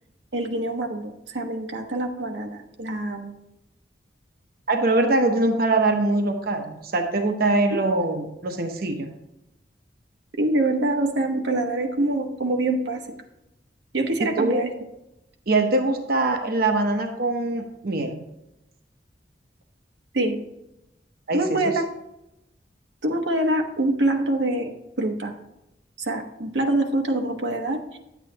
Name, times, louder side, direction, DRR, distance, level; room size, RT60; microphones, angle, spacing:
voice 1, 0.3-3.3 10.4-13.0 13.9-14.7 20.1-20.4 21.3-21.8 23.0-24.7 25.0-25.3 26.0-28.0, right 2 dB, 90° right, 3 dB, 1.1 m, -25 dB
voice 2, 4.7-9.1 14.2-14.7 15.5-18.2 21.3-21.6, right 2 dB, 60° right, 4 dB, 0.8 m, -23 dB
10.0 x 8.2 x 2.8 m, 0.90 s
head